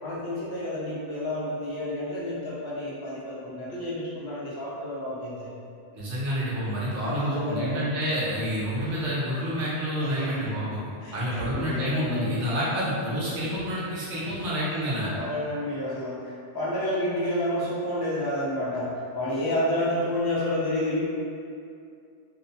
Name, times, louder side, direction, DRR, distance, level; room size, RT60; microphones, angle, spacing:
voice 1, 0.0-5.5 7.0-7.9 10.0-10.6 11.0-12.4 15.1-21.0, left 1 dB, 30° left, -8 dB, 0.5 m, -30 dB
voice 2, 5.9-10.8 11.1-15.1, equal, 85° right, -9 dB, 1.1 m, -28 dB
2.6 x 2.2 x 2.7 m, 2.4 s
omnidirectional pair, 1.1 m